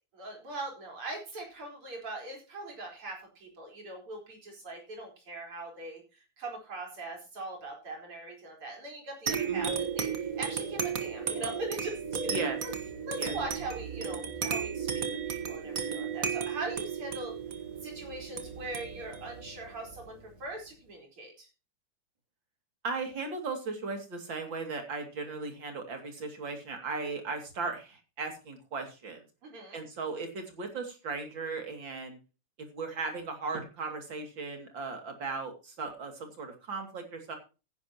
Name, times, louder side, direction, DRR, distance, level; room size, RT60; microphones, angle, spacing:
voice 1, 0.1-6.0 6.4-12.3 12.6-12.7 13.1-17.4 17.8-21.5 29.4-29.8, right 2 dB, 80° right, 1 dB, 5.4 m, -41 dB
sound 1, 9.3-20.3, right 6 dB, 45° right, 1.7 m, -34 dB
voice 2, 9.5-9.8 12.3-12.6 13.2-13.3 22.8-29.2 29.7-32.2 32.6-37.4, right 4 dB, 60° right, 4 dB, 3.3 m, -37 dB
15.5 x 10.5 x 3.0 m, 0.31 s
omnidirectional pair, 2.4 m